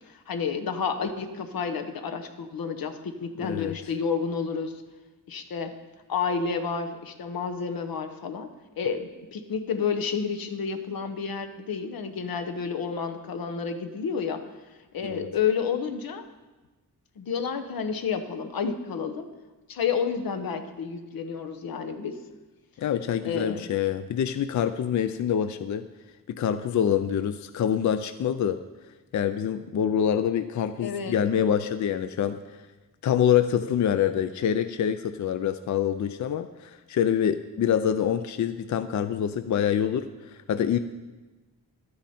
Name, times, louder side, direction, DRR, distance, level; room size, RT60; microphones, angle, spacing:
voice 1, 0.1-4.8 5.3-5.7 6.1-8.5 8.8-14.4 14.9-16.2 17.2-19.3 19.7-22.2 23.2-23.7 30.8-31.2, left 6 dB, 90° left, 7 dB, 1.0 m, -30 dB
voice 2, 3.4-3.7 15.0-15.3 22.8-25.8 26.3-28.6 29.1-32.4 33.0-40.8, left 9 dB, 55° left, 10 dB, 0.4 m, -26 dB
12.0 x 9.6 x 4.3 m, 1.2 s
wide cardioid pair, 150°, 34 cm